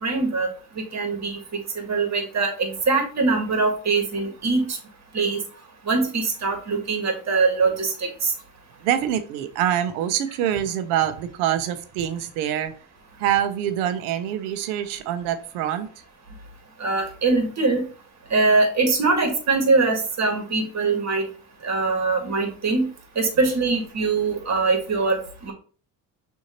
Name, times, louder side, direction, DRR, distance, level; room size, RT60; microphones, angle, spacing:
voice 1, 0.0-0.5 0.9-4.8 5.1-5.4 5.8-8.3 16.8-17.8 18.3-21.2 21.6-22.9 23.1-25.5, right 3 dB, 35° right, 3 dB, 1.7 m, -22 dB
voice 2, 8.8-12.7 13.2-15.9, right 10 dB, 75° right, 11 dB, 0.7 m, -25 dB
6.2 x 2.8 x 3.0 m, 0.40 s
hypercardioid pair, 55°, 45 cm